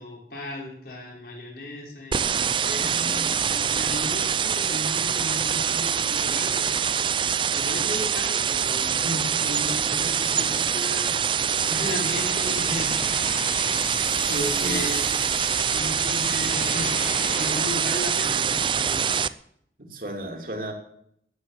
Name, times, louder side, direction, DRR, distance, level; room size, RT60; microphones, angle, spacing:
voice 1, 0.0-13.4 14.2-15.1 15.7-19.1, left 1 dB, 55° left, -2 dB, 5.2 m, -35 dB
sound 1, 2.1-19.3, right 8 dB, 30° right, 0.4 m, -25 dB
voice 2, 2.7-3.3 14.6-14.8 19.8-20.7, right 1 dB, 50° right, 3 dB, 2.9 m, -34 dB
sound 2, 11.4-17.9, left 4 dB, 40° left, 1.2 m, -35 dB
14.5 x 9.4 x 7.4 m, 0.70 s
head